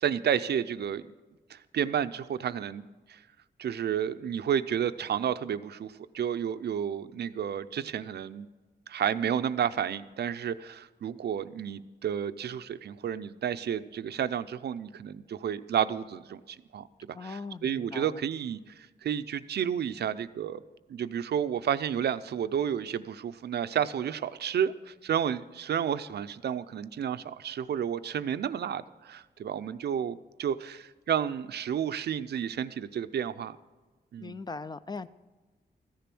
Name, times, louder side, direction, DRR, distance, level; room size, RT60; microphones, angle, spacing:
voice 1, 0.0-1.0 1.5-3.2 3.6-8.5 8.9-20.6 20.9-33.6 34.1-34.4, right 8 dB, 80° right, 13 dB, 0.5 m, -31 dB
voice 2, 17.1-18.2 34.2-35.1, left 4 dB, 25° left, 15 dB, 0.3 m, -40 dB
14.5 x 10.5 x 6.1 m, 1.2 s
wide cardioid pair, 150°, 17 cm